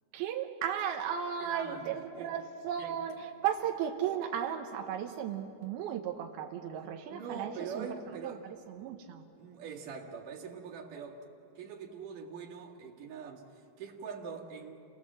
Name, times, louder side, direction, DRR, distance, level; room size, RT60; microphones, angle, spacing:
voice 1, 0.1-7.9 8.2-8.4 8.8-9.2, right 9 dB, 90° right, 2.9 m, -35 dB
voice 2, 1.4-2.4 2.8-3.0 7.1-8.5 9.4-11.3 11.6-14.7, right 6 dB, 65° right, 3.5 m, -43 dB
29.5 x 19.5 x 7.5 m
omnidirectional pair, 4.2 m